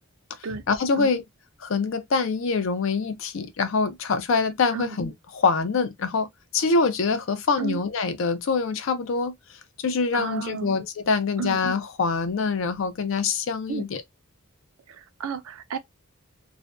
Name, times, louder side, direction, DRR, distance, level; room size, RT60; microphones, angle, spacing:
voice 1, 0.7-1.2 1.6-6.3 6.5-9.3 9.8-14.0, left 4 dB, 65° left, 0.5 m, -25 dB
voice 2, 10.1-10.8 11.4-11.6 13.7-13.8 14.9-15.8, right 6 dB, 75° right, 0.4 m, -32 dB
2.4 x 2.2 x 2.3 m
head